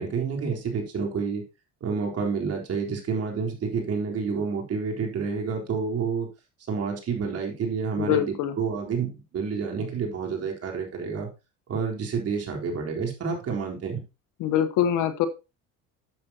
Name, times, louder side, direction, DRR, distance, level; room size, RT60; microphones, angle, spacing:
voice 1, 0.0-1.4 1.8-6.3 6.7-11.3 11.7-14.0, right 5 dB, 50° right, 1 dB, 4.0 m, -29 dB
voice 2, 8.0-8.5 14.4-15.3, left 10 dB, 75° left, 11 dB, 1.2 m, -24 dB
11.5 x 7.8 x 2.9 m, 0.27 s
cardioid pair, 110°, 31 cm